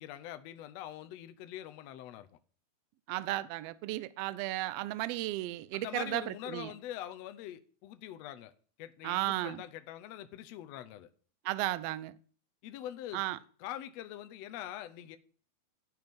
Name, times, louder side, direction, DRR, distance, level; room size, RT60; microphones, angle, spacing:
voice 1, 0.0-2.4 5.7-8.5 8.8-11.1 12.6-13.2 13.6-15.2, left 12 dB, 75° left, 1.7 m, -43 dB
voice 2, 3.1-6.7 9.0-9.6 11.4-12.1 13.1-13.4, right 17 dB, 85° right, 1.4 m, -34 dB
13.0 x 4.7 x 5.3 m
omnidirectional pair, 3.4 m